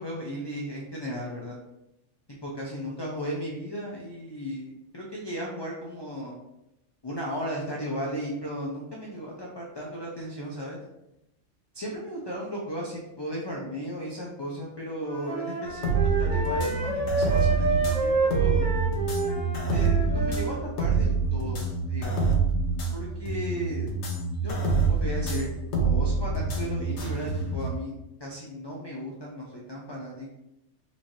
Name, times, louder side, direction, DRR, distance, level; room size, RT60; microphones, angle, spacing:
voice 1, 0.0-1.6 2.4-6.4 7.0-10.8 11.7-18.7 19.6-22.3 22.9-23.9 24.4-30.3, equal, 40° left, -3 dB, 0.3 m, -35 dB
Wind instrument woodwind instrument, 15.0-20.5, right 3 dB, 90° right, 1.4 m, -29 dB
sound 1, 15.7-27.7, right 4 dB, 65° left, 1.0 m, -26 dB
4.3 x 2.6 x 3.0 m, 0.88 s
omnidirectional pair, 1.3 m